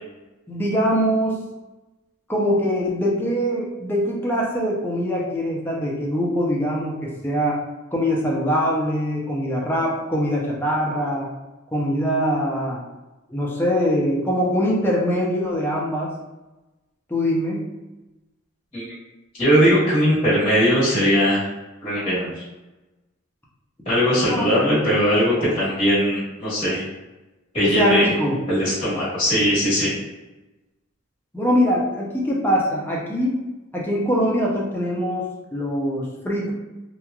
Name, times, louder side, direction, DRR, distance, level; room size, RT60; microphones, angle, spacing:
voice 1, 0.5-1.4 2.3-7.6 7.9-11.3 11.7-12.8 13.3-16.1 17.1-17.7 24.3-24.5 27.6-28.4 31.3-33.4 33.7-36.5, equal, 10° left, -3 dB, 0.5 m, -22 dB
voice 2, 19.4-21.4 21.8-22.4 23.8-26.8 27.5-28.1 28.5-29.9, equal, 25° left, -11 dB, 1.3 m, -19 dB
2.9 x 2.3 x 2.3 m, 1.1 s
head